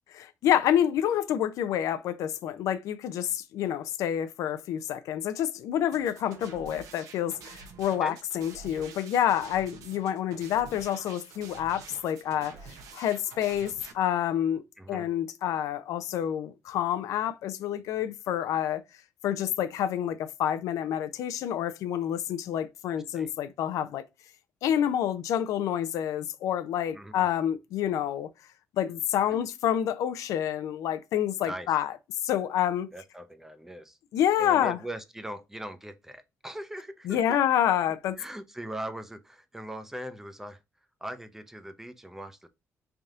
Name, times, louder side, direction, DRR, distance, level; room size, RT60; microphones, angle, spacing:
voice 1, 0.2-12.5 12.9-18.8 19.2-24.0 24.6-28.3 28.8-31.9 32.2-32.9 34.1-34.8 37.1-38.2, left 10 dB, 85° left, 0.5 m, -28 dB
sound 1, 5.9-13.9, right 5 dB, 85° right, 0.7 m, -48 dB
voice 2, 14.8-15.1 22.9-23.3 26.9-27.3 29.3-29.5 31.4-31.7 32.9-34.0 34.4-37.4 38.2-40.6 41.0-42.5, right 1 dB, 5° right, 0.5 m, -40 dB
3.4 x 2.7 x 3.6 m
cardioid pair, 110°, 6 cm